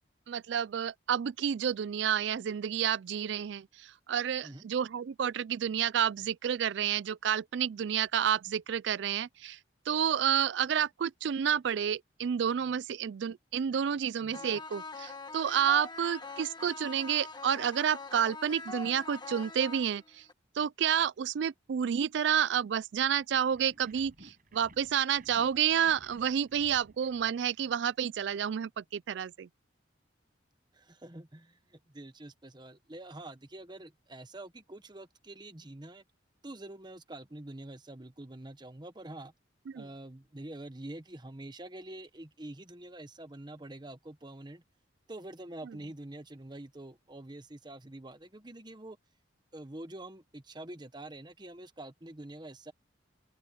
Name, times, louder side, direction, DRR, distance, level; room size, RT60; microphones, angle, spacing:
voice 1, 0.3-9.6 9.9-20.2 20.6-29.5 39.7-39.8, right 8 dB, 65° right, 0.4 m, -30 dB
sound 1, 14.3-20.3, left 3 dB, 25° left, 1.9 m, -43 dB
sound 2, 23.5-28.1, right 1 dB, 45° right, 7.8 m, -58 dB
voice 2, 30.7-36.0 36.4-39.3 39.7-44.6 45.1-49.0 49.5-52.7, right 1 dB, 25° right, 1.1 m, -46 dB
open air
head